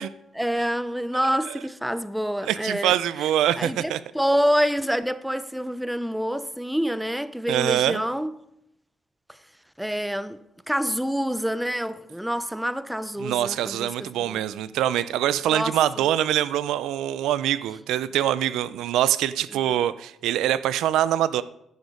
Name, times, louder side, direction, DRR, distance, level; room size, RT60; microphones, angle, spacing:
voice 1, 0.0-3.0 3.6-8.3 9.8-10.4 10.7-14.4 15.5-15.7, equal, 5° right, 0.6 m, -27 dB
voice 2, 2.4-4.0 7.5-8.0 13.2-21.4, right 12 dB, 85° right, 0.5 m, -24 dB
14.5 x 6.4 x 5.3 m
cardioid pair, 90°, 0 cm